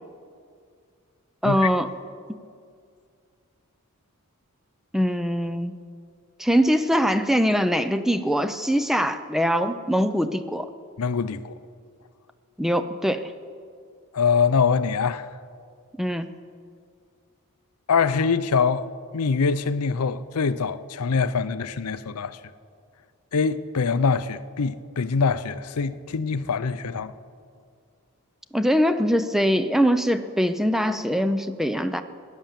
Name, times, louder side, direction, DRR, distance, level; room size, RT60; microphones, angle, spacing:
voice 1, 1.4-1.9 4.9-5.9 6.4-10.7 12.6-13.3 16.0-16.3 28.5-32.0, equal, ahead, 0.4 m, -22 dB
voice 2, 11.0-11.5 14.1-15.3 17.9-18.9 19.1-22.4 23.3-27.1, left 5 dB, 85° left, 0.6 m, -24 dB
16.5 x 10.5 x 7.4 m
head